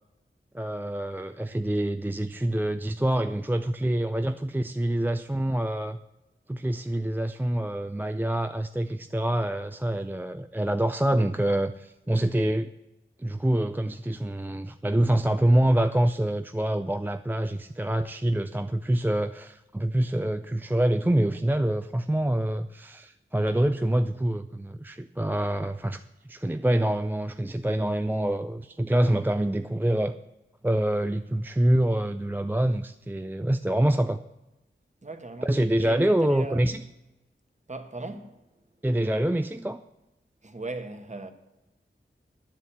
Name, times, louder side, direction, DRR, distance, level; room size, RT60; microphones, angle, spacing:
voice 1, 0.5-6.0 6.5-12.7 13.2-30.2 30.6-34.2 35.4-36.8 38.8-39.8, right 1 dB, 10° right, 0.4 m, -26 dB
voice 2, 35.0-35.5 35.8-36.8 37.7-38.4 40.4-41.3, right 2 dB, 35° right, 1.3 m, -38 dB
10.5 x 7.5 x 8.5 m
wide cardioid pair, 70°, 21 cm